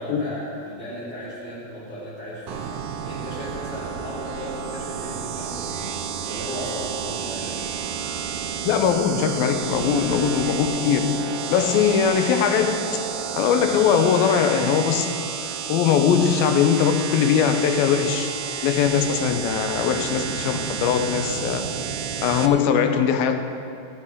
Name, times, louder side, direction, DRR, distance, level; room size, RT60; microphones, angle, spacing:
voice 1, 0.0-2.7 3.0-5.9 6.2-7.6, equal, 5° left, -11 dB, 3.1 m, -35 dB
sound 1, 2.5-22.5, right 7 dB, 75° right, 1.9 m, -31 dB
voice 2, 8.7-11.2 11.5-12.9 13.4-15.1 15.7-18.3 18.6-21.7 22.2-23.4, left 7 dB, 85° left, 7 dB, 2.6 m, -21 dB
14.5 x 14.0 x 3.7 m, 2.7 s
omnidirectional pair, 4.2 m